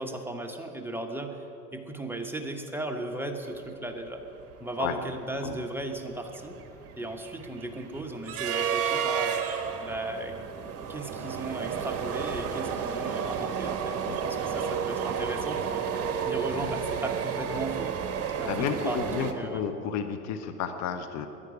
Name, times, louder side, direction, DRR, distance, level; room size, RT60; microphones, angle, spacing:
voice 1, 0.0-1.4 1.7-4.3 4.6-6.6 7.0-10.4 10.9-15.9 16.2-17.9 18.4-19.6, right 1 dB, 5° right, 3 dB, 1.2 m, -36 dB
sound 1, 3.9-4.0 4.3-4.5 4.9-19.3, right 7 dB, 35° right, 1.5 m, -32 dB
voice 2, 18.3-21.3, left 7 dB, 40° left, 8 dB, 0.9 m, -32 dB
11.0 x 10.5 x 9.5 m, 3.0 s
hypercardioid pair, 95°, 44 cm